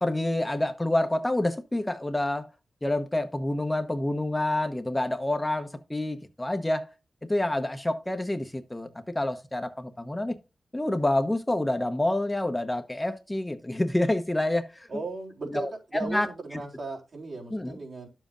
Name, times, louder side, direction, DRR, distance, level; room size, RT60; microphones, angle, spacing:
voice 1, 0.0-2.4 2.8-6.9 7.3-8.9 9.1-10.3 10.7-14.9 15.5-16.6 17.5-17.8, left 1 dB, 15° left, 0.9 m, -28 dB
voice 2, 14.9-15.7 15.9-18.1, right 3 dB, 65° right, 3.8 m, -37 dB
11.0 x 7.4 x 2.5 m
cardioid pair, 70°, 0 cm